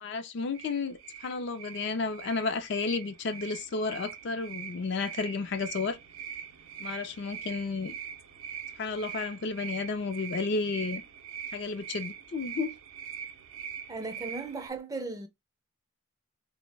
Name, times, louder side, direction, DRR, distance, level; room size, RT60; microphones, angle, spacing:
voice 1, 0.0-6.0 6.8-8.0 8.8-11.0 11.5-12.7, left 4 dB, 55° left, 0.4 m, -32 dB
sound 1, 0.5-14.7, right 8 dB, 75° right, 0.5 m, -43 dB
voice 2, 13.9-15.3, right 3 dB, 15° right, 0.4 m, -36 dB
3.8 x 2.0 x 3.2 m
head